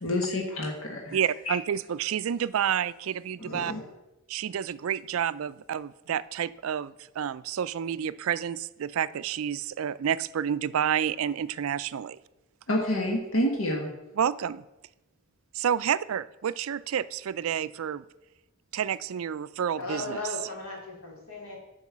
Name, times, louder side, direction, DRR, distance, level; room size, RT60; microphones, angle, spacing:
voice 1, 0.0-1.2 1.4-1.5 3.4-3.8 12.7-14.0, left 1 dB, 70° left, 0 dB, 1.6 m, -28 dB
voice 2, 1.1-3.7 4.3-12.2 14.2-14.6 15.5-18.0 18.7-20.2, right 8 dB, 75° right, 17 dB, 0.4 m, -29 dB
voice 3, 19.8-21.6, left 2 dB, 90° left, -3 dB, 3.8 m, -36 dB
9.5 x 5.4 x 7.2 m, 0.99 s
head